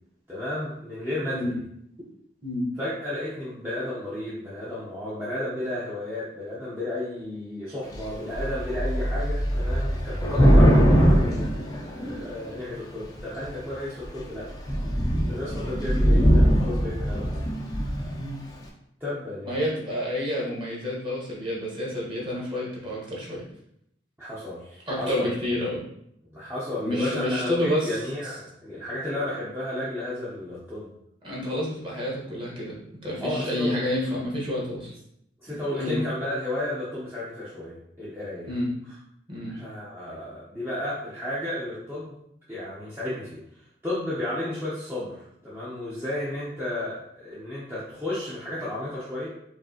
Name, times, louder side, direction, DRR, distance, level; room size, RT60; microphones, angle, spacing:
voice 1, 0.3-1.6 2.8-14.5 15.3-17.4 19.0-19.6 24.2-25.4 26.3-30.9 33.2-33.9 35.4-38.5 39.5-42.2 42.5-43.4 43.8-49.3, left 1 dB, 10° right, -10 dB, 0.8 m, -33 dB
Thunder / Rain, 7.9-8.1 8.3-12.4 13.2-13.6 14.0-14.2 14.4-18.2, equal, 20° left, 0.5 m, -21 dB
voice 2, 19.4-23.4 24.9-25.8 26.8-28.0 31.2-32.8 33.0-34.9 35.8-36.0 38.5-38.7 39.3-39.5, left 1 dB, 25° right, -5 dB, 1.3 m, -29 dB
4.7 x 2.9 x 2.9 m, 0.75 s
head